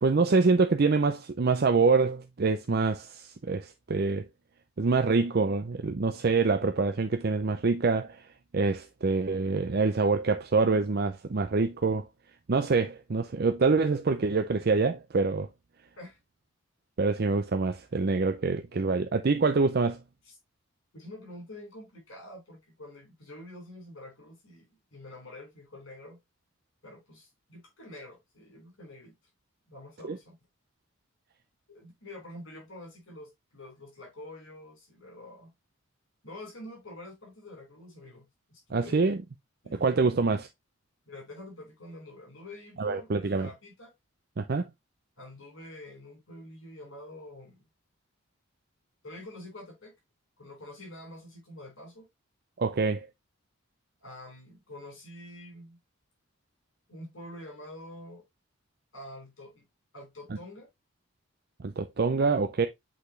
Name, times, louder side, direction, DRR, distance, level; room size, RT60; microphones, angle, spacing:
voice 1, 0.0-4.3 4.8-8.2 8.5-12.0 12.5-15.5 17.0-20.0 30.1-30.2 38.7-39.2 39.7-40.5 42.8-43.5 44.4-44.7 52.6-53.1 61.6-62.7, right 4 dB, 45° right, 0.5 m, -25 dB
voice 2, 20.9-26.2 26.8-29.1 29.7-30.4 31.7-35.5 36.2-39.1 39.6-40.1 41.1-43.9 45.2-47.6 49.0-49.9 50.4-52.1 54.0-55.8 56.9-58.2 58.9-59.6 59.9-60.7, left 1 dB, 65° left, 4.7 m, -47 dB
8.1 x 4.3 x 3.1 m
head